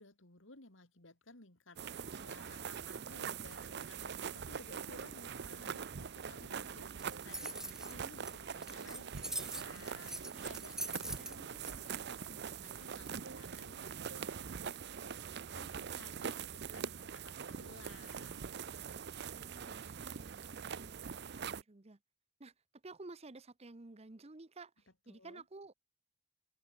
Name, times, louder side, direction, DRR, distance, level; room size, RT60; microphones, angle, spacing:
voice 1, 0.0-18.6 25.1-25.4, left 2 dB, 70° left, 3.5 m, -58 dB
sound 1, 1.8-21.6, right 7 dB, 55° right, 0.6 m, -43 dB
voice 2, 2.0-3.5 19.3-21.0 21.3-22.0 22.4-25.7, right 3 dB, 30° right, 0.9 m, -54 dB
sound 2, 4.7-5.2 5.6-6.7 7.0-7.4 7.8-8.0 8.6-8.8 9.1-12.9 13.2-13.8 14.1-14.4 14.7-14.9, right 3 dB, 80° right, 1.8 m, -58 dB
sound 3, 6.9-11.7, right 1 dB, 5° right, 0.7 m, -43 dB
open air
head